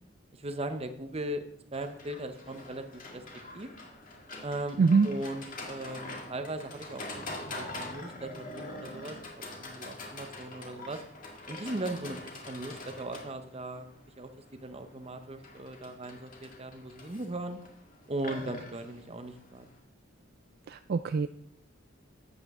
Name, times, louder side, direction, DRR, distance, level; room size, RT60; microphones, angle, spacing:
voice 1, 0.3-1.4 1.7-3.2 3.5-3.7 4.4-4.8 5.0-9.2 9.6-11.0 11.5-13.9 14.2-17.6 18.1-19.7, right 1 dB, 30° right, 8 dB, 0.8 m, -38 dB
Livestock farm animals working animals, 1.7-19.8, left 2 dB, 40° left, 1.9 m, -44 dB
voice 2, 4.8-5.1 20.7-21.3, right 4 dB, 50° right, 11 dB, 0.3 m, -24 dB
12.0 x 8.3 x 3.6 m, 0.73 s
head